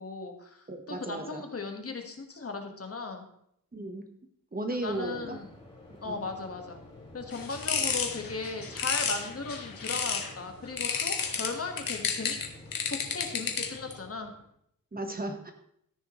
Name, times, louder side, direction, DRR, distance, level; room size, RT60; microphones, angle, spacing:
voice 1, 0.0-3.2 4.7-5.5 6.0-6.8 7.1-12.4 12.9-14.3, left 4 dB, 45° left, 4 dB, 1.6 m, -37 dB
voice 2, 0.7-1.4 3.7-4.0 4.5-5.4 6.0-6.3 14.9-15.5, right 2 dB, 25° right, 4 dB, 1.2 m, -35 dB
Waves surf, 4.8-14.5, left 1 dB, 20° left, 5.0 m, -50 dB
sound 1, 7.3-10.3 10.8-13.9, left 6 dB, 80° left, 1.4 m, -32 dB
13.5 x 10.0 x 3.1 m, 0.71 s
wide cardioid pair, 150°, 34 cm